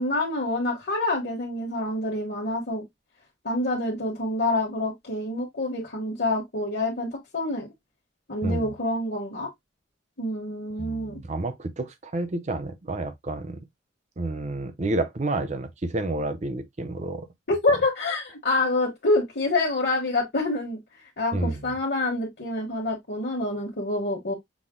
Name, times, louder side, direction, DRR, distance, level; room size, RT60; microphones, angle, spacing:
voice 1, 0.0-2.8 3.4-7.7 8.3-9.5 10.2-11.2 17.5-20.8 21.2-24.3, left 2 dB, 60° left, 1.3 m, -27 dB
voice 2, 8.4-8.7 10.8-13.6 14.2-17.3 21.3-21.7, right 2 dB, 35° right, 0.6 m, -30 dB
6.1 x 2.1 x 3.7 m
head